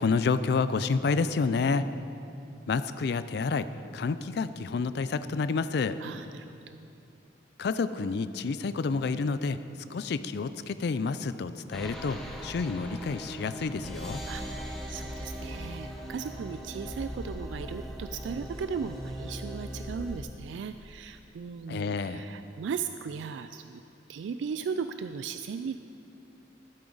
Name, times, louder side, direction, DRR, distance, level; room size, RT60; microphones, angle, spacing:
voice 1, 0.0-1.9 2.7-3.7 3.9-6.0 7.6-9.6 9.9-14.2 21.7-22.3, left 4 dB, 60° left, 13 dB, 0.4 m, -29 dB
voice 2, 6.0-6.9 14.3-14.4 14.9-23.8 24.1-25.8, right 6 dB, 75° right, 10 dB, 0.3 m, -37 dB
sound 1, 11.7-20.2, equal, ahead, 0.8 m, -39 dB
13.0 x 8.7 x 3.9 m, 2.7 s
head